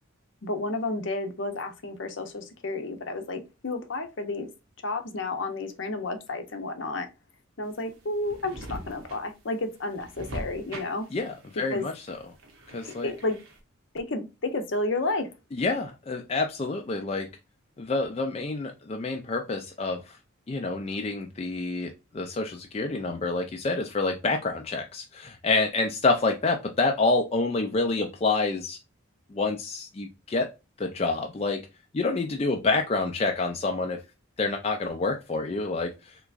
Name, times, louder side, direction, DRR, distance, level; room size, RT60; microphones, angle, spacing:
voice 1, 0.4-4.5 4.8-7.1 7.6-11.1 11.7-11.9 13.0-13.4 13.9-15.3, left 2 dB, 65° left, 0.7 m, -31 dB
sound 1, 7.7-13.6, right 1 dB, 90° right, 0.9 m, -43 dB
voice 2, 11.1-12.2 12.7-13.1 15.5-17.3 17.8-20.2 20.5-28.8 29.3-30.5 30.8-31.7 31.9-34.0 34.4-35.9, left 3 dB, 30° left, 0.4 m, -28 dB
3.5 x 3.0 x 2.4 m
head